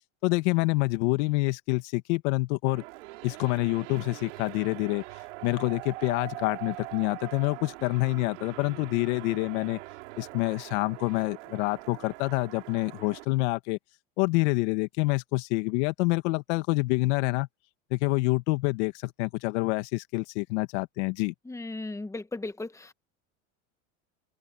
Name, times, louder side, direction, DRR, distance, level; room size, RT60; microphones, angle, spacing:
voice 1, 0.2-2.8 3.2-5.0 5.4-9.8 10.2-13.8 14.2-17.5 17.9-21.3, left 23 dB, 70° left, 1.9 m, -27 dB
sound 1, 2.7-13.2, right 22 dB, 80° right, 3.1 m, -43 dB
voice 2, 21.4-22.9, left 2 dB, 10° left, 1.4 m, -36 dB
hypercardioid pair, 95°, 36 cm